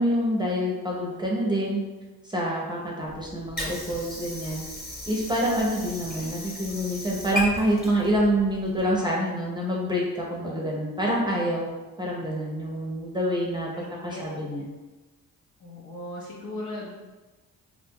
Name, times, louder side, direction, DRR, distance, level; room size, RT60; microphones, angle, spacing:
voice 1, 0.0-1.8 2.2-4.6 5.0-11.7 12.0-13.7 14.0-14.7, equal, 10° right, -3 dB, 0.5 m, -26 dB
Water / Sink (filling or washing), 3.1-9.1, left 1 dB, 25° left, 0.9 m, -36 dB
voice 2, 10.2-10.7 13.7-14.3 15.6-17.0, left 1 dB, 70° left, -4 dB, 0.7 m, -38 dB
2.6 x 2.1 x 3.5 m, 1.2 s
cardioid pair, 80°, 37 cm